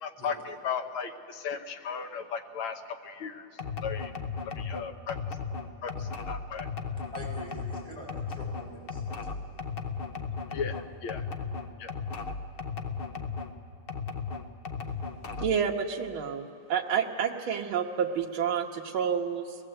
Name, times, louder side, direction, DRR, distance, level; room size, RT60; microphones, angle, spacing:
voice 1, 0.0-3.5 3.8-4.1 4.5-5.2 5.8-6.7 10.5-11.3 11.8-11.9, left 6 dB, 90° left, 6 dB, 1.9 m, -36 dB
sound 1, 3.6-13.5 13.9-15.7, left 5 dB, 50° left, 0.7 m, -36 dB
voice 2, 7.1-9.5, equal, ahead, -5 dB, 6.8 m, -45 dB
voice 3, 15.4-19.6, right 7 dB, 90° right, 0 dB, 1.8 m, -29 dB
22.5 x 19.5 x 7.8 m, 2.4 s
omnidirectional pair, 2.2 m